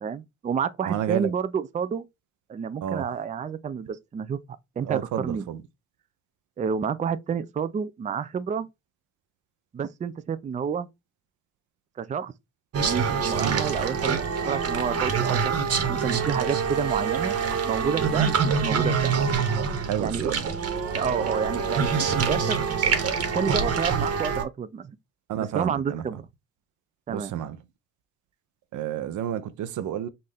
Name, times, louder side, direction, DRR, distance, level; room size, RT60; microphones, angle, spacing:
voice 1, 0.0-2.0 2.5-4.4 4.8-5.5 6.6-8.7 9.7-10.9 12.0-12.3 12.8-14.2 14.5-15.5 15.9-17.4 17.6-19.1 20.0-20.3 20.9-22.6 23.3-25.0 25.4-26.2 27.1-27.3, right 7 dB, 25° right, 0.4 m, -29 dB
voice 2, 0.9-1.3 2.8-3.1 4.8-5.6 13.4-13.6 19.9-20.5 25.3-26.2 27.1-27.6 28.7-30.1, right 10 dB, 75° right, 0.7 m, -30 dB
sound 1, 12.7-24.4, right 6 dB, 50° right, 1.3 m, -25 dB
5.5 x 2.6 x 3.4 m
cardioid pair, 90°, 30 cm